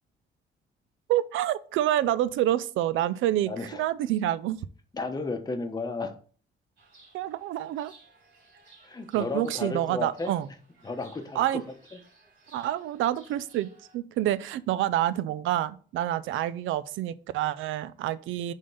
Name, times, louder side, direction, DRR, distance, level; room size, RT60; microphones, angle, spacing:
voice 1, 1.1-4.6 7.1-7.9 9.1-10.5 11.4-11.6 12.5-13.7 13.9-18.5, right 13 dB, 80° right, 0.4 m, -27 dB
voice 2, 3.5-3.8 4.9-6.2 8.8-10.3 10.8-11.6 11.9-12.0, left 3 dB, 20° left, 1.0 m, -33 dB
Chirp tweet, 6.8-14.0, right 3 dB, 60° right, 2.9 m, -58 dB
5.1 x 3.6 x 5.5 m
cardioid pair, 90°, 20 cm